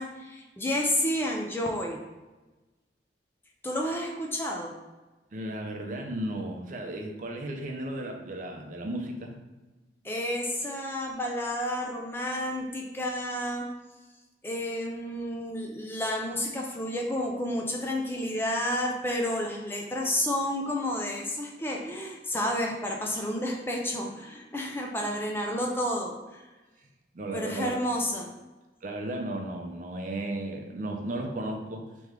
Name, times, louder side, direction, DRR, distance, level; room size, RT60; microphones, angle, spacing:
voice 1, 0.0-2.0 3.6-4.7 10.0-13.7 14.4-26.4 27.3-28.3, left 1 dB, 15° left, 0 dB, 0.4 m, -30 dB
voice 2, 5.3-9.4 27.1-27.8 28.8-31.8, right 1 dB, 45° right, 3 dB, 0.5 m, -34 dB
3.2 x 3.0 x 3.6 m, 1.2 s
head